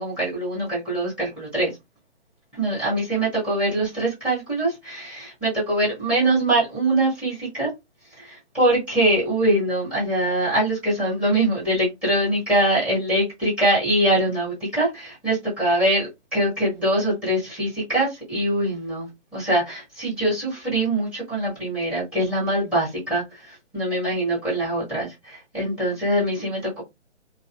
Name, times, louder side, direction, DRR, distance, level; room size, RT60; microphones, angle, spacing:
voice 1, 0.0-1.7 2.5-7.7 8.2-26.8, right 1 dB, 5° right, 0.7 m, -23 dB
2.5 x 2.3 x 2.3 m
figure-of-eight pair, 135°, 36 cm